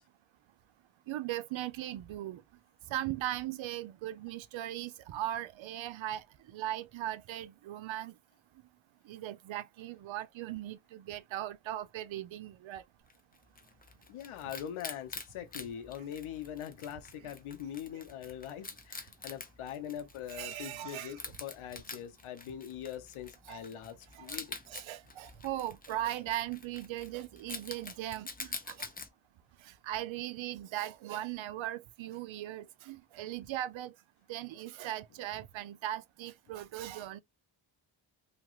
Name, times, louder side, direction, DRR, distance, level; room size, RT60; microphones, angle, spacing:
voice 1, 1.1-2.4 2.9-8.1 9.1-12.8 17.2-17.3 20.3-21.2 23.5-23.6 24.1-24.4 24.7-28.9 29.6-33.9 34.3-37.2, right 13 dB, 70° right, 0.5 m, -39 dB
Wild animals, 13.1-29.1, left 4 dB, 20° left, 0.6 m, -47 dB
voice 2, 14.1-24.6, left 10 dB, 85° left, 0.6 m, -42 dB
2.9 x 2.3 x 2.9 m
cardioid pair, 70°, 49 cm